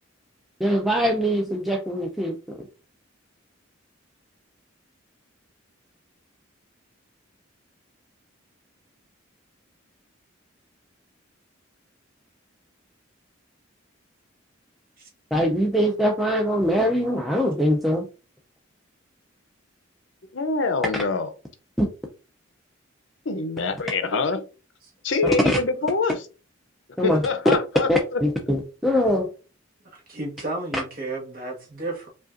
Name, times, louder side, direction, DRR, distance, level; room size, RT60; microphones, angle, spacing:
voice 1, 0.6-2.7 15.3-18.1 21.8-21.9 25.2-25.6 27.0-27.3 27.9-29.3, equal, ahead, 0.4 m, -22 dB
voice 2, 20.3-21.3 23.3-24.4 25.0-26.2 27.0-28.2, left 3 dB, 65° left, 0.6 m, -25 dB
voice 3, 29.8-32.1, right 2 dB, 45° right, 1.2 m, -33 dB
4.9 x 2.4 x 2.5 m
head